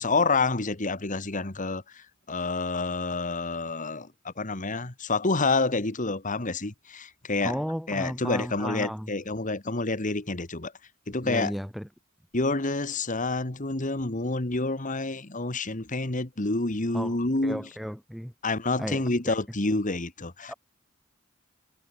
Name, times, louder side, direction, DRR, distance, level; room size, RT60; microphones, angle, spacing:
voice 1, 0.0-7.6 7.9-10.7 11.1-11.5 12.3-17.7 18.4-20.5, left 3 dB, 40° left, 1.9 m, -28 dB
voice 2, 7.4-9.1 11.2-11.9 16.9-17.2 17.4-18.3 18.8-19.4 20.5-20.6, equal, ahead, 4.1 m, -34 dB
head